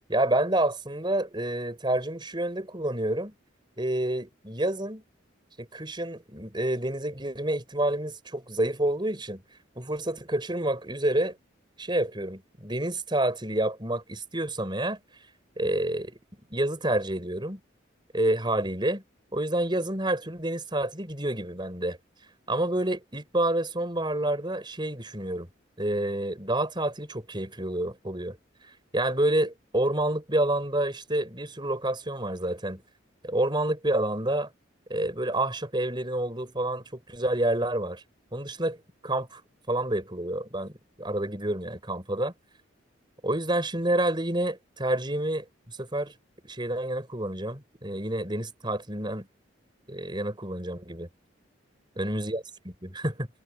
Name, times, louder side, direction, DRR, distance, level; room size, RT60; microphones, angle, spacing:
voice 1, 0.1-3.3 3.8-5.0 5.6-9.4 9.7-11.4 11.8-15.0 15.6-16.2 16.5-17.6 18.1-19.0 19.3-22.0 22.5-25.5 25.8-28.4 28.9-32.8 33.2-34.5 34.9-38.0 38.3-39.4 39.7-42.3 43.2-46.1 46.4-49.3 49.9-51.1 52.0-53.3, right 1 dB, 25° right, 5.7 m, -28 dB
head